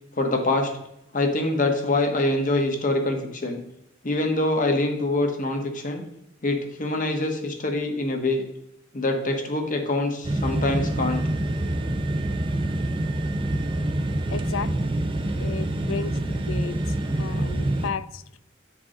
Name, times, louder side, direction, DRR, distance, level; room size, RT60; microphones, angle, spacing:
voice 1, 0.2-0.7 1.1-3.6 4.0-6.0 6.4-8.4 8.9-11.2, left 2 dB, 40° left, 3 dB, 1.2 m, -24 dB
sound 1, 10.2-17.9, right 1 dB, 25° right, 0.5 m, -26 dB
voice 2, 14.3-14.9 15.4-16.8 17.2-18.4, left 6 dB, 80° left, 15 dB, 0.4 m, -34 dB
9.6 x 4.8 x 3.7 m, 0.82 s
head